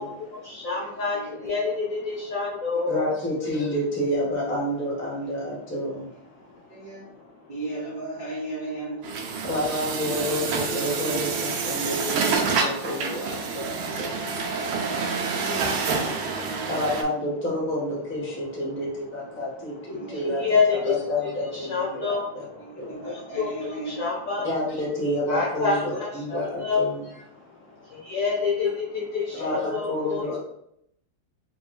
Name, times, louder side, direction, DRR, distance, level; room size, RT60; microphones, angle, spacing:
voice 1, 0.0-3.0 6.4-6.8 7.4-7.5 11.7-11.9 13.3-14.9 18.4-18.9 19.3-21.1 21.5-24.5 25.3-26.9 27.3-30.4, left 4 dB, 60° left, -5 dB, 0.9 m, -29 dB
voice 2, 0.8-1.6 2.7-2.8 5.2-5.6 6.7-7.1 7.5-9.1 12.4-14.0 14.5-16.6 19.9-20.5 22.6-24.0 25.3-25.4 28.4-28.5 29.3-29.8 30.2-30.3, right 2 dB, 60° right, -6 dB, 0.5 m, -38 dB
voice 3, 2.9-6.1 9.4-14.2 16.7-20.4 20.7-22.4 22.8-23.0 24.4-27.0 29.4-30.4, left 1 dB, 15° left, -4 dB, 0.4 m, -29 dB
Truck, 9.0-17.0, right 5 dB, 85° right, 1.4 m, -28 dB
3.3 x 3.0 x 3.2 m, 0.75 s
omnidirectional pair, 2.2 m